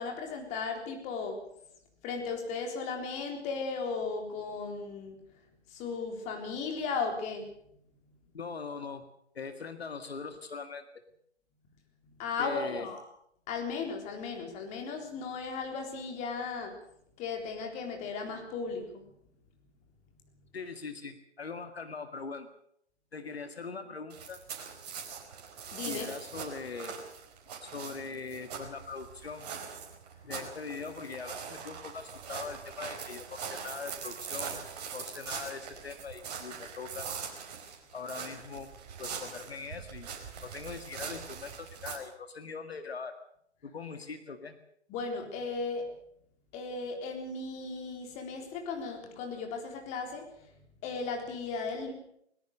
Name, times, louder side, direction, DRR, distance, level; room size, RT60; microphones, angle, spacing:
voice 1, 0.0-1.4 2.0-5.2 5.7-7.5 12.2-13.0 13.5-16.8 17.2-19.0 25.7-26.1 44.9-45.9 46.5-50.3 50.8-51.9, left 4 dB, 20° left, 4 dB, 3.9 m, -36 dB
voice 2, 8.3-9.1 9.3-10.8 12.4-12.9 20.5-22.5 23.1-24.4 25.9-27.0 27.6-29.5 30.2-34.6 34.9-37.1 37.9-38.7 39.0-43.1 43.6-44.6, left 5 dB, 60° left, 8 dB, 2.0 m, -41 dB
sound 1, 24.1-42.0, right 6 dB, 35° right, 4.6 m, -42 dB
21.0 x 20.5 x 6.7 m, 0.70 s
figure-of-eight pair, 130°, 34 cm